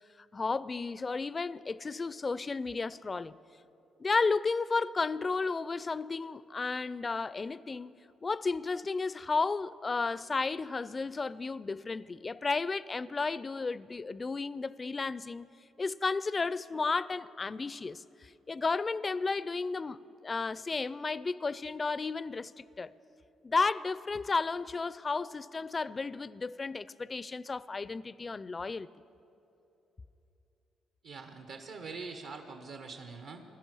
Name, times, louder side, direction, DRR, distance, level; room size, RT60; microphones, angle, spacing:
voice 1, 0.3-3.4 4.0-15.5 15.8-22.9 23.4-28.9, left 4 dB, 30° left, 0.4 m, -33 dB
voice 2, 31.0-33.4, right 4 dB, 75° right, 1.1 m, -44 dB
16.5 x 12.5 x 6.3 m
cardioid pair, 90°, 0 cm